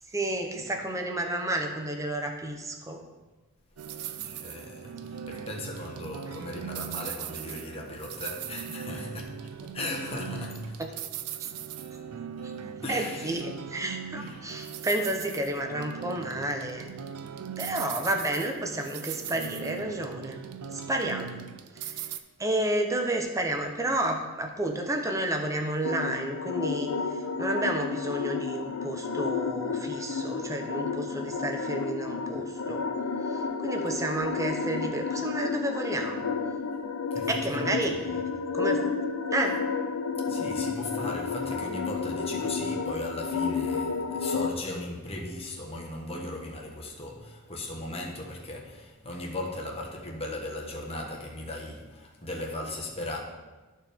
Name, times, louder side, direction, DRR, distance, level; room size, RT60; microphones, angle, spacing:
voice 1, 0.1-3.0 10.8-10.9 12.4-12.5 12.9-16.9 17.6-20.4 20.7-21.4 21.7-22.1 22.4-32.8 33.3-36.2 37.3-38.0 38.5-38.8 39.3-39.6, right 1 dB, 15° right, 0.8 m, -31 dB
sound 1, 3.8-22.2, right 8 dB, 80° right, 0.5 m, -39 dB
voice 2, 4.2-10.8 12.8-13.4 14.1-14.5 37.1-38.2 40.2-53.2, left 1 dB, 25° left, 1.3 m, -37 dB
sound 2, 25.8-44.5, left 5 dB, 75° left, 0.6 m, -31 dB
13.0 x 4.4 x 3.5 m
head